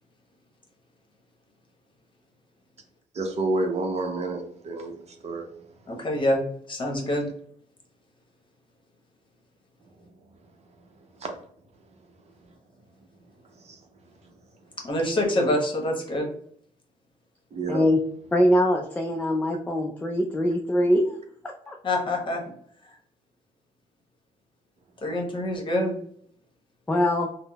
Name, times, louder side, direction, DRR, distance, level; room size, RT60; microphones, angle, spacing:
voice 1, 3.1-5.5 11.2-11.4 13.6-13.8 17.5-17.8, right 2 dB, 45° right, 0.7 m, -29 dB
voice 2, 5.9-6.4 6.7-7.3 14.8-16.3 21.8-22.4 22.8-23.0 25.0-26.0, left 1 dB, 35° left, 1.0 m, -26 dB
voice 3, 17.7-18.0 18.3-21.2 21.4-21.8 26.9-27.3, left 1 dB, 10° left, 0.3 m, -23 dB
3.6 x 2.0 x 2.2 m
cardioid pair, 85°, 15 cm